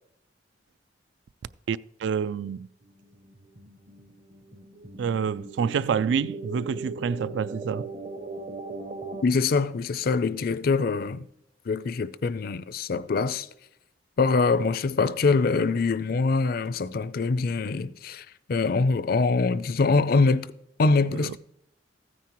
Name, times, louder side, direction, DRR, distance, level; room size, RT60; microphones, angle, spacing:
voice 1, 1.7-2.7 5.0-7.9 21.1-21.3, right 6 dB, 70° right, 0.3 m, -28 dB
sound 1, 2.9-9.2, right 3 dB, 40° right, 0.8 m, -39 dB
voice 2, 9.2-11.3 11.7-13.5 14.2-20.5 20.8-21.4, left 4 dB, 50° left, 0.4 m, -24 dB
14.5 x 9.4 x 3.0 m
head